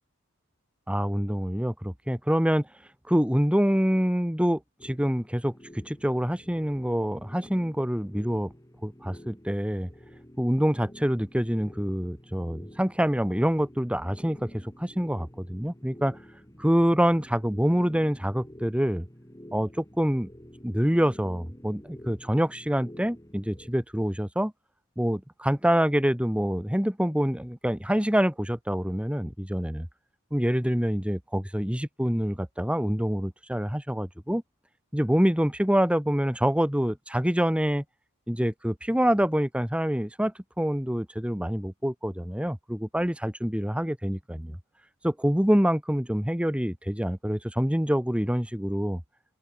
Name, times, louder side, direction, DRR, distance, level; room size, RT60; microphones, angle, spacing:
voice 1, 0.9-2.7 3.1-8.5 8.8-9.9 10.4-16.2 16.6-19.1 19.5-20.3 20.6-24.5 25.0-29.9 30.3-34.4 34.9-37.8 38.3-44.6 45.0-49.0, equal, 5° right, 1.9 m, -26 dB
sound 1, 4.8-23.7, equal, 15° left, 5.9 m, -49 dB
open air
head